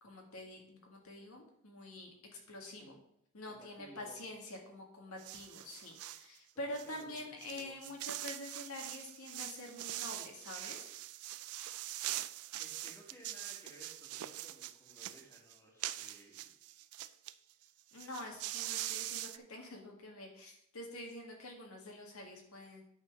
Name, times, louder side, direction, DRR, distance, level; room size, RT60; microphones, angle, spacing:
voice 1, 0.0-2.1 2.5-2.9 3.3-10.9 17.9-22.8, left 1 dB, 75° left, 1 dB, 1.8 m, -47 dB
voice 2, 3.5-4.2 6.5-7.9 12.6-16.4, equal, 10° left, -2 dB, 2.2 m, -58 dB
sound 1, 5.2-6.3 6.7-17.3 17.6-17.7 17.9-19.4, right 15 dB, 90° right, 0.4 m, -43 dB
9.8 x 4.4 x 6.0 m, 0.72 s
head